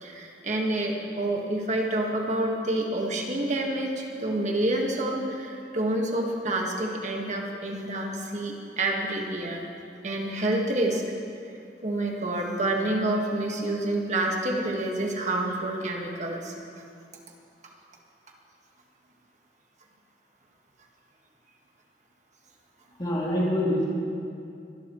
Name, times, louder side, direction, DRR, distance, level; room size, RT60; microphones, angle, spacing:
voice 1, 0.0-9.6 10.0-11.0 11.8-16.5, right 1 dB, 45° right, 0 dB, 1.6 m, -28 dB
voice 2, 23.0-23.9, left 1 dB, 25° left, -6 dB, 2.9 m, -25 dB
23.5 x 12.5 x 3.1 m, 2.6 s
head